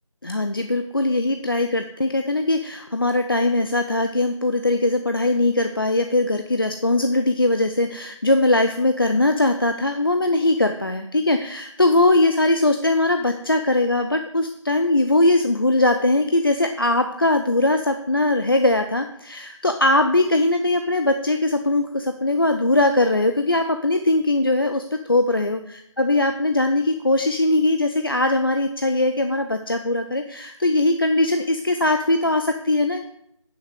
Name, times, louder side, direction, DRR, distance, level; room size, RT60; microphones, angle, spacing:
voice 1, 0.2-33.1, left 2 dB, 45° left, 6 dB, 0.5 m, -20 dB
9.5 x 6.0 x 4.9 m, 0.77 s
figure-of-eight pair, 175°, 17 cm